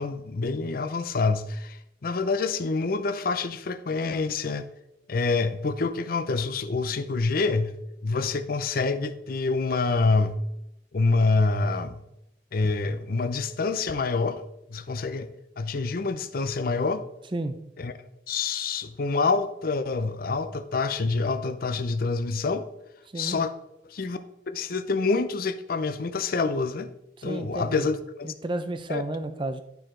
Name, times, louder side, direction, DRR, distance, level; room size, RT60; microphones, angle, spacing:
voice 1, 0.0-4.6 5.1-7.8 8.0-10.4 10.9-12.0 12.5-14.4 14.7-15.3 15.6-17.0 17.8-17.9 18.3-22.7 23.2-23.5 23.9-24.2 24.5-26.9 27.2-28.3 28.9-29.0, left 3 dB, 50° left, 10 dB, 0.5 m, -26 dB
voice 2, 27.2-27.9 28.2-29.6, right 2 dB, 25° right, 9 dB, 0.6 m, -31 dB
11.5 x 4.6 x 3.8 m, 0.85 s
head